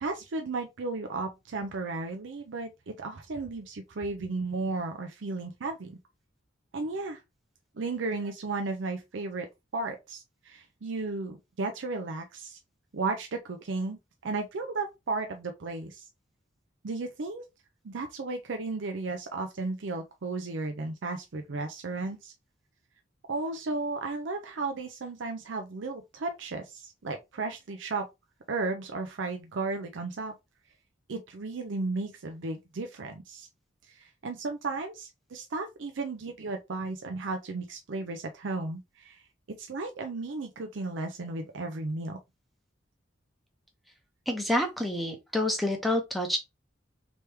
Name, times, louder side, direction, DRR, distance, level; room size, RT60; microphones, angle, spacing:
voice 1, 0.0-6.0 6.7-7.2 7.8-9.5 9.7-12.6 12.9-16.0 16.8-17.4 17.8-22.3 23.3-28.1 28.5-30.3 31.1-33.5 33.9-39.2 39.6-42.2, right 3 dB, 70° right, 0.5 m, -34 dB
voice 2, 44.3-46.4, left 1 dB, ahead, 0.7 m, -28 dB
3.3 x 3.0 x 3.2 m
head